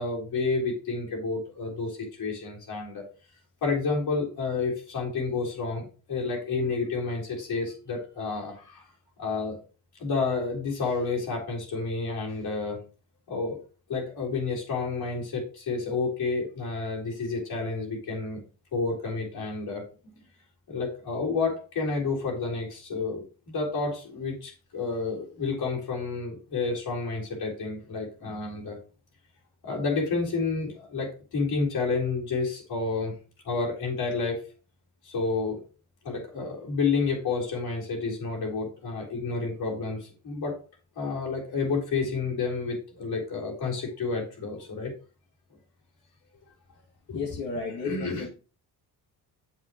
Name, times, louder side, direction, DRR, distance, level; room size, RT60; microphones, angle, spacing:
voice 1, 0.0-3.0 3.6-8.9 9.2-9.6 10.0-12.8 13.3-13.6 13.9-18.4 18.7-19.8 20.1-20.2 20.7-28.8 29.6-33.1 33.4-34.4 35.0-35.6 36.0-40.6 41.0-44.9 47.1-47.3 47.8-48.3, left 4 dB, 60° left, -2 dB, 4.0 m, -30 dB
voice 2, 47.1-48.3, left 5 dB, 80° left, -4 dB, 2.5 m, -33 dB
8.1 x 7.4 x 3.1 m, 0.35 s
cardioid pair, 105°, 41 cm